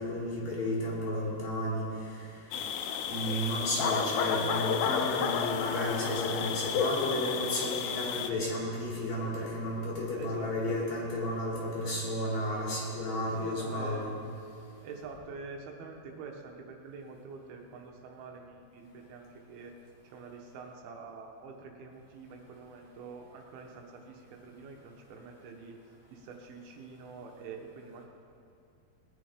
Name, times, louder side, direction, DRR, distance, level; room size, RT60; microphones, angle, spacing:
voice 1, 0.0-2.3 3.1-14.1, left 1 dB, 50° left, -5 dB, 4.5 m, -33 dB
sound 1, 2.5-8.3, left 7 dB, 75° left, 2.2 m, -31 dB
voice 2, 10.2-10.8 13.3-14.1 14.8-19.7 20.0-28.0, right 4 dB, 80° right, 2 dB, 3.0 m, -46 dB
19.5 x 9.9 x 5.1 m, 2.5 s
omnidirectional pair, 4.4 m